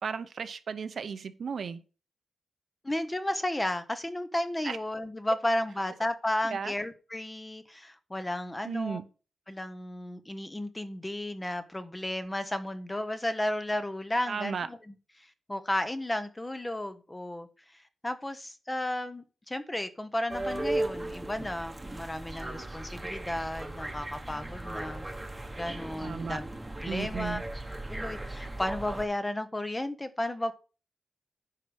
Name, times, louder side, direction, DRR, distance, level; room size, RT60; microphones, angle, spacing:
voice 1, 0.0-1.8 4.6-4.8 6.5-6.7 8.6-9.0 14.3-14.7 26.0-26.4 26.9-27.4, right 6 dB, 55° right, 0.7 m, -34 dB
voice 2, 2.8-9.0 9.5-25.1 25.6-26.5 26.8-27.4 27.9-30.5, left 1 dB, 15° left, 0.8 m, -33 dB
sound 1, 20.3-29.1, right 2 dB, 10° right, 1.1 m, -37 dB
9.9 x 4.7 x 6.3 m
wide cardioid pair, 160°, 0 cm